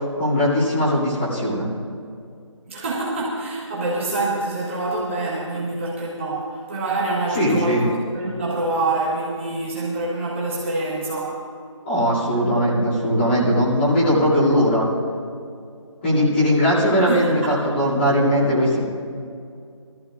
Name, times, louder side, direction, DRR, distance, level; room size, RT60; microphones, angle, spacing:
voice 1, 0.2-1.7 7.3-7.9 11.9-14.9 16.0-18.9, equal, 20° left, -7 dB, 3.4 m, -19 dB
voice 2, 2.7-11.4 17.1-17.5, right 2 dB, 25° right, -7 dB, 1.8 m, -26 dB
21.0 x 14.0 x 2.6 m, 2.3 s
figure-of-eight pair, 175°, 16 cm